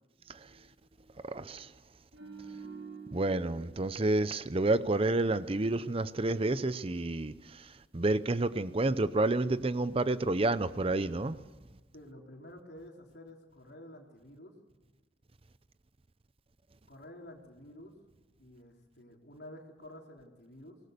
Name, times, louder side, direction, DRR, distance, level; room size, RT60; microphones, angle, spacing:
voice 1, 1.2-1.7 3.1-11.4, right 2 dB, 30° right, 0.7 m, -30 dB
sound 1, 2.1-5.4 5.7-5.9, right 5 dB, 65° right, 3.2 m, -49 dB
voice 2, 11.9-14.5 16.9-17.9 18.4-20.8, left 1 dB, 65° left, 4.0 m, -50 dB
24.5 x 19.5 x 6.8 m
head